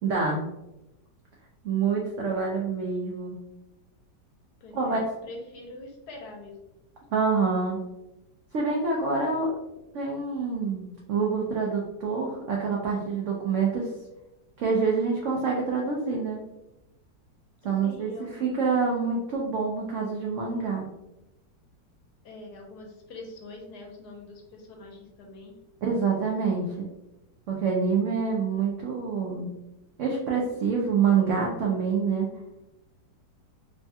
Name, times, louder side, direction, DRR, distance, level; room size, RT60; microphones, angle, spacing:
voice 1, 0.0-0.4 1.6-3.4 4.7-5.0 7.1-7.8 8.5-9.5 9.9-13.9 14.6-16.4 17.6-20.9 25.8-26.9 27.5-29.5 30.0-32.3, right 5 dB, 75° right, -2 dB, 0.7 m, -26 dB
voice 2, 4.6-6.6 17.8-18.5 22.2-25.5, left 2 dB, 70° left, 1 dB, 1.1 m, -44 dB
3.3 x 2.3 x 2.6 m, 0.94 s
omnidirectional pair, 1.9 m